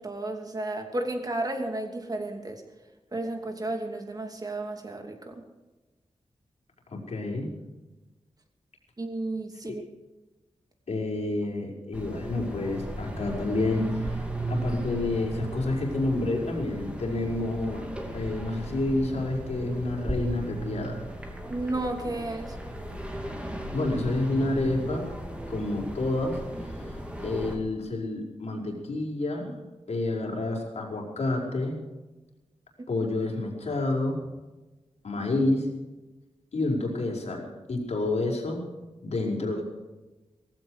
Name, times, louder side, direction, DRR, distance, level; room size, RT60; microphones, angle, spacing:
voice 1, 0.0-2.6 3.1-5.4 9.0-9.8 21.5-22.6, right 2 dB, 35° right, 4 dB, 2.7 m, -32 dB
voice 2, 6.9-7.5 10.9-14.2 14.5-21.1 23.7-25.1 25.5-26.8 27.2-29.6 29.9-31.8 32.9-34.2 35.0-35.7 36.5-38.7 39.0-39.6, left 2 dB, 75° left, -1 dB, 5.1 m, -29 dB
sound 1, 11.9-27.6, right 1 dB, 10° right, 2.7 m, -36 dB
18.0 x 15.5 x 4.9 m, 1.1 s
wide cardioid pair, 115°, 11 cm